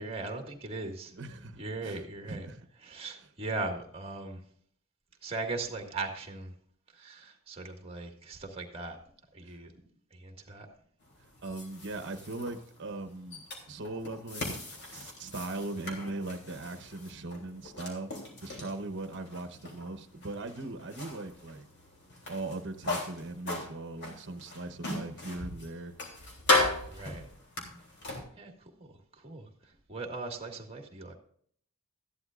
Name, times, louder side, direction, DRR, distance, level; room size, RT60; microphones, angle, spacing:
voice 1, 0.0-1.2 1.6-2.5 2.8-4.4 5.2-6.5 6.9-9.0 9.3-9.7 10.1-10.7 26.9-27.3 28.1-31.2, right 3 dB, 25° right, 1.9 m, -39 dB
voice 2, 1.2-2.0 2.2-2.6 9.4-9.6 11.4-14.6 14.9-18.1 18.4-21.7 22.3-25.9, right 2 dB, 55° right, 1.1 m, -39 dB
sound 1, 11.0-28.2, left 2 dB, 55° left, 3.3 m, -37 dB
14.5 x 11.5 x 2.5 m
head